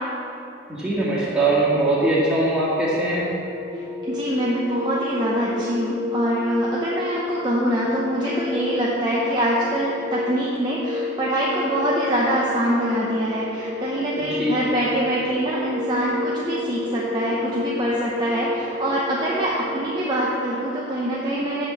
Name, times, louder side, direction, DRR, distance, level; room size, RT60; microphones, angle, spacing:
voice 1, 0.7-3.3 14.2-14.6, right 2 dB, 5° right, -8 dB, 1.9 m, -21 dB
sound 1, 3.1-20.0, left 2 dB, 45° left, 1.5 m, -31 dB
voice 2, 3.7-21.7, right 1 dB, 20° right, -6 dB, 0.8 m, -24 dB
7.3 x 5.4 x 7.2 m, 2.9 s
head